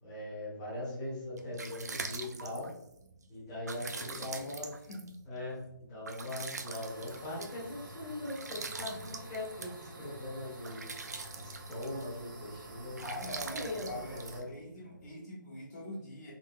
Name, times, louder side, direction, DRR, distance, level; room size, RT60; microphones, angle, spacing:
voice 1, 0.0-2.7 3.3-4.7 5.3-10.9 11.4-13.3 13.5-14.5, left 1 dB, 10° left, -8 dB, 0.7 m, -40 dB
sound 1, 1.2-15.1, right 4 dB, 50° right, 0.3 m, -45 dB
voice 2, 3.9-4.5 4.8-5.0 8.5-9.0 13.0-16.3, left 1 dB, 50° left, -8 dB, 1.2 m, -44 dB
sound 2, 6.7-14.4, right 2 dB, 70° right, 0.9 m, -49 dB
3.8 x 2.7 x 2.6 m, 0.78 s
hypercardioid pair, 175°, 11 cm